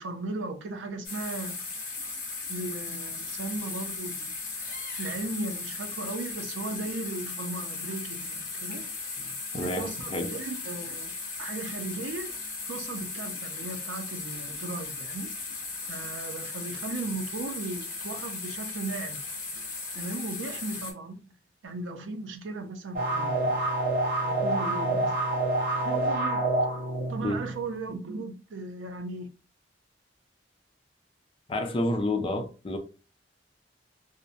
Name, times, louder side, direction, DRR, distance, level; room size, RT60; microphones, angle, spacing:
voice 1, 0.0-1.7 2.5-4.3 5.0-8.8 9.5-11.1 11.4-12.3 12.7-15.3 15.9-19.2 20.0-21.2 21.6-23.6 24.2-25.2 25.8-26.4 27.1-29.3, right 3 dB, 85° right, 0.5 m, -36 dB
sound 1, 1.0-20.9, left 4 dB, 50° left, 0.8 m, -37 dB
voice 2, 9.5-10.4 27.2-27.4 31.5-32.8, left 1 dB, 30° left, 0.4 m, -29 dB
sound 2, 22.9-27.6, right 2 dB, 50° right, 0.7 m, -27 dB
2.6 x 2.0 x 2.6 m
head